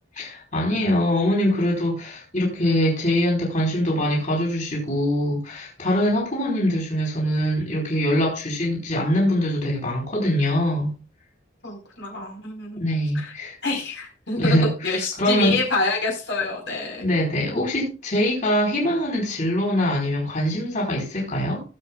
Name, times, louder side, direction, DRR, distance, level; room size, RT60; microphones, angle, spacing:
voice 1, 0.1-10.9 12.8-13.6 14.4-15.6 17.0-21.6, equal, 40° left, 4.6 m, -23 dB
voice 2, 11.6-12.8 13.1-13.3 13.6-17.0, left 3 dB, 60° left, 4.6 m, -27 dB
19.0 x 8.1 x 2.4 m
head